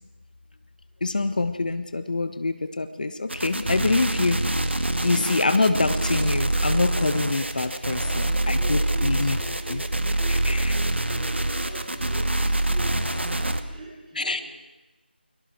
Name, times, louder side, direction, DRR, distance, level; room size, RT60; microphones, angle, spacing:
voice 1, 1.0-4.4 5.0-8.0 8.5-9.4 9.7-9.8 10.5-10.6 14.2-14.4, left 3 dB, 50° left, 10 dB, 1.4 m, -25 dB
sound 1, 3.3-13.6, right 1 dB, 85° right, 2.1 m, -25 dB
voice 2, 7.9-10.6 11.1-14.6, right 2 dB, 10° right, -11 dB, 4.7 m, -42 dB
29.5 x 23.5 x 4.7 m, 1.1 s
figure-of-eight pair, 170°, 6 cm